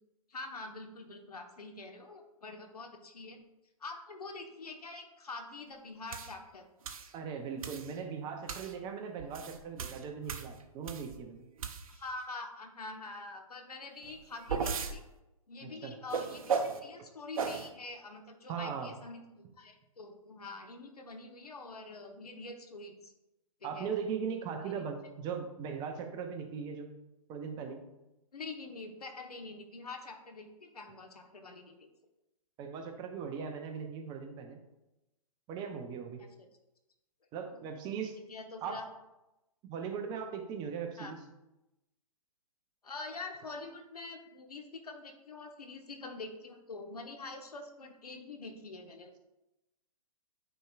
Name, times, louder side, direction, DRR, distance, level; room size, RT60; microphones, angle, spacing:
voice 1, 0.3-3.4 3.8-6.7 11.9-15.0 15.5-23.1 23.6-23.9 24.7-24.8 28.3-31.9 36.2-36.5 37.5-37.6 38.3-38.8 41.0-41.1 42.8-49.1, left 3 dB, 80° left, 4 dB, 1.1 m, -45 dB
sound 1, 6.1-6.3 6.9-7.1 7.6-7.9 8.5-8.7 9.2-11.2 11.6-12.1 14.0-15.0 16.1-16.8 17.4-17.7, right 5 dB, 65° right, 0.7 m, -36 dB
voice 2, 7.1-11.5 15.6-16.0 18.5-18.9 23.6-26.9 27.3-27.8 32.6-34.6 35.5-36.2 37.3-38.2 38.6-38.9 39.6-41.2, right 6 dB, 20° right, 5 dB, 0.7 m, -39 dB
9.1 x 4.5 x 2.4 m, 0.95 s
figure-of-eight pair, 125°, 19 cm